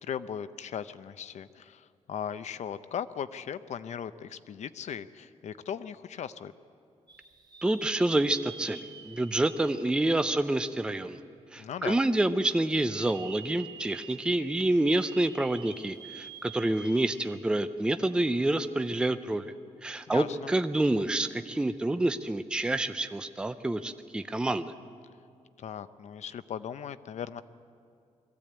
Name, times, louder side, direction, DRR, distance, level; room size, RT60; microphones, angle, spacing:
voice 1, 0.0-6.5 11.6-12.0 20.1-20.5 25.6-27.4, left 8 dB, 70° left, 13 dB, 0.6 m, -38 dB
sound 1, 7.1-11.0 11.6-11.7 12.7-17.7 18.0-18.1 20.1-20.3, right 5 dB, 35° right, 1.2 m, -48 dB
voice 2, 7.6-11.2 11.5-19.5 19.8-24.7, right 2 dB, 5° right, 9 dB, 0.5 m, -28 dB
21.5 x 15.5 x 8.7 m, 2.5 s
wide cardioid pair, 165°, 12 cm